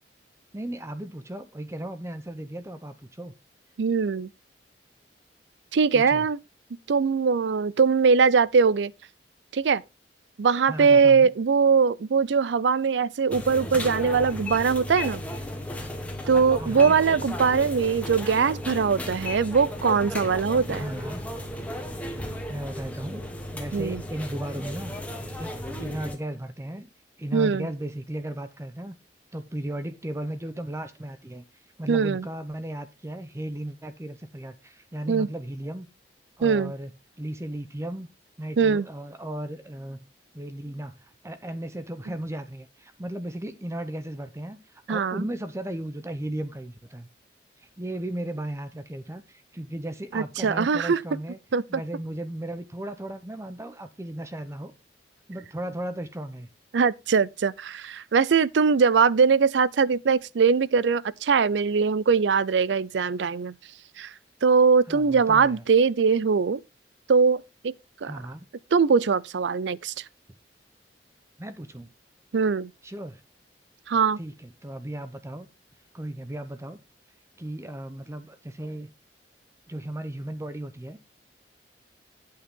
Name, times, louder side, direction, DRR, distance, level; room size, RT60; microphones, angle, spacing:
voice 1, 0.5-3.3 5.9-6.3 10.7-11.3 16.6-17.0 20.8-21.2 22.5-23.3 23.5-24.9 25.4-25.5 25.8-26.9 27.2-28.9 29.3-31.4 31.8-35.9 36.4-36.9 37.2-38.1 38.4-40.0 40.3-44.6 44.9-47.1 47.6-51.4 51.7-54.7 55.3-56.5 64.9-65.6 68.0-68.5 71.4-71.9 72.8-73.2 74.2-75.5 75.9-76.8 77.4-78.9 79.7-81.0, right 1 dB, 15° right, 0.7 m, -35 dB
voice 2, 3.8-4.3 5.7-6.4 6.9-8.9 9.5-9.8 10.4-15.2 16.3-20.8 23.7-24.0 27.3-27.7 31.9-32.3 35.1-35.3 36.4-36.7 38.6-38.9 44.9-45.2 50.1-51.0 51.5-51.8 56.7-63.5 64.0-64.1 64.4-66.6 67.1-67.7 68.0-68.1 68.7-70.0 72.3-72.7 73.9-74.2, right 5 dB, 85° right, 0.5 m, -21 dB
sound 1, 13.3-26.2, left 1 dB, 10° left, 1.7 m, -35 dB
8.6 x 8.5 x 3.6 m
head